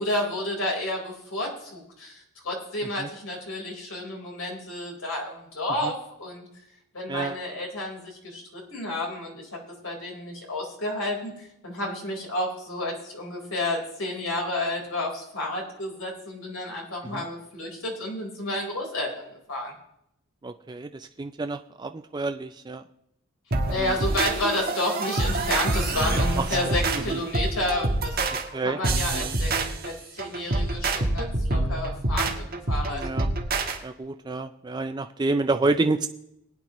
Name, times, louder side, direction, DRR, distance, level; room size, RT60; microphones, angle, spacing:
voice 1, 0.0-6.4 6.9-9.5 9.8-19.7 23.7-28.2 28.6-33.0, left 1 dB, 70° left, -1 dB, 4.2 m, -31 dB
voice 2, 7.1-7.4 17.0-17.2 20.4-22.8 23.8-23.9 26.4-27.2 28.5-28.8 29.1-29.3 32.9-33.3 33.8-36.1, right 3 dB, 20° right, 7 dB, 0.3 m, -29 dB
sound 1, 23.5-33.8, right 2 dB, 45° right, 1.3 m, -26 dB
20.0 x 9.4 x 3.0 m, 0.78 s
head